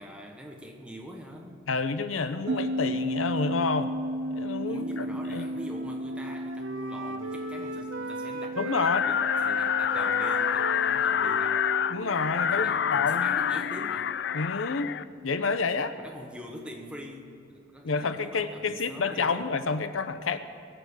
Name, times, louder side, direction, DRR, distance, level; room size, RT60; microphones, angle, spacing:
voice 1, 0.0-1.6 4.6-11.7 12.5-14.1 16.0-19.5, equal, 5° right, 1 dB, 1.3 m, -44 dB
voice 2, 1.7-3.9 4.3-5.5 8.6-9.0 11.9-13.3 14.3-14.9 15.2-15.9 17.8-20.4, left 4 dB, 90° left, 11 dB, 0.7 m, -29 dB
sound 1, 2.5-15.2, right 1 dB, 60° right, 0.5 m, -36 dB
Wind instrument woodwind instrument, 4.0-8.9 9.2-14.5, right 2 dB, 75° right, 1.0 m, -39 dB
sound 2, 8.8-15.0, left 8 dB, 55° left, 0.3 m, -27 dB
21.0 x 7.7 x 6.4 m, 2.5 s
head